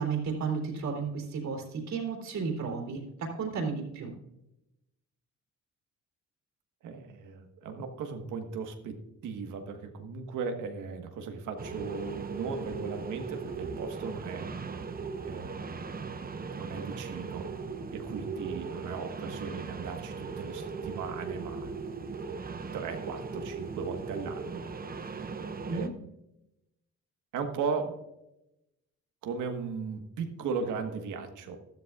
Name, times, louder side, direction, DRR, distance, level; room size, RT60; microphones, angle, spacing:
voice 1, 0.0-4.1 25.6-25.9, right 5 dB, 65° right, 1 dB, 3.3 m, -33 dB
voice 2, 6.8-8.9 9.2-14.5 15.2-15.8 16.5-17.5 17.9-21.7 22.7-25.3 25.7-25.9 27.3-28.0 29.2-31.6, right 5 dB, 80° right, 5 dB, 1.5 m, -37 dB
sound 1, 11.6-25.9, right 4 dB, 30° right, 0.9 m, -38 dB
13.5 x 12.5 x 2.4 m, 0.89 s
cardioid pair, 90°, 30 cm